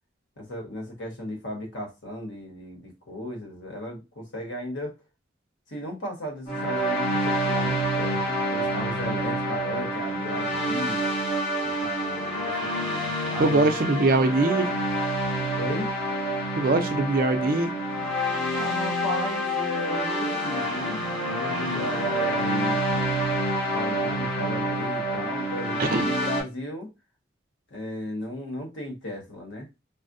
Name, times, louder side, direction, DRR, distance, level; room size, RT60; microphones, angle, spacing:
voice 1, 0.4-5.0 5.7-11.0 11.6-13.8 15.5-15.9 18.5-23.0 23.7-26.9 27.7-29.7, left 1 dB, 85° left, 1.2 m, -35 dB
sound 1, 6.5-26.4, equal, 35° left, 2.0 m, -27 dB
voice 2, 13.4-14.7 16.6-17.7 25.8-26.1, right 2 dB, 50° right, 0.5 m, -22 dB
4.0 x 2.1 x 2.6 m
head